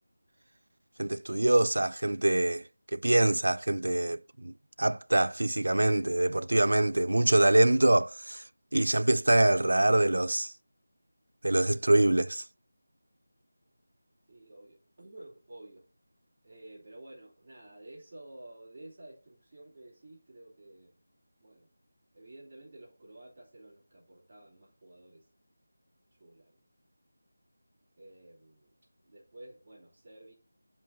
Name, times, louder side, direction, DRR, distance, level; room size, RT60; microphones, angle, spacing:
voice 1, 1.0-2.6 2.9-8.4 8.7-10.5 11.4-12.4, right 1 dB, 80° right, 0.5 m, -25 dB
voice 2, 14.3-15.9 16.4-21.0 21.4-21.7 22.1-25.3 26.1-26.6 28.0-28.7 29.1-30.3, right 1 dB, 20° right, 3.2 m, -51 dB
11.5 x 5.3 x 4.0 m
figure-of-eight pair, 180°, 0 cm